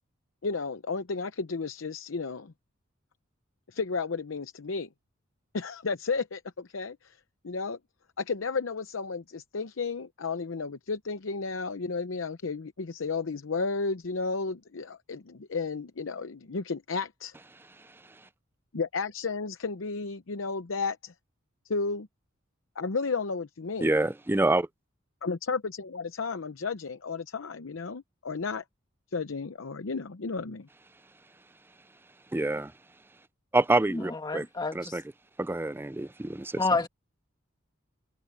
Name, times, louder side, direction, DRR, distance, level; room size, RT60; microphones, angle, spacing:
voice 1, 0.4-2.5 3.7-4.9 5.5-7.2 7.4-7.8 8.2-17.3 18.7-21.1 21.7-22.1 22.8-23.9 25.2-28.6 29.1-30.7, left 4 dB, 80° left, 0.7 m, -33 dB
voice 2, 23.8-24.7 32.3-32.7 33.5-34.4 34.7-35.0 35.4-36.6, right 2 dB, 10° right, 0.4 m, -26 dB
voice 3, 33.9-35.0 36.6-36.9, left 3 dB, 20° left, 1.6 m, -29 dB
head